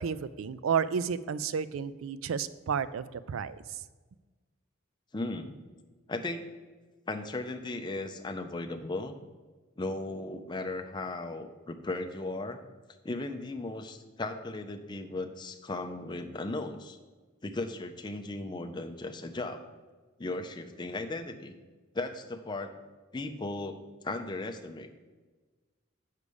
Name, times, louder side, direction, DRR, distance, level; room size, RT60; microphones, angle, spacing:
voice 1, 0.0-3.8, right 7 dB, 85° right, 15 dB, 0.4 m, -32 dB
voice 2, 5.1-5.5 6.1-6.5 7.1-9.1 9.8-12.6 13.0-17.0 17.4-19.6 20.2-21.5 21.9-22.9 23.1-23.8 24.0-25.0, left 2 dB, 20° left, 5 dB, 0.5 m, -36 dB
6.6 x 4.9 x 6.9 m, 1.3 s
head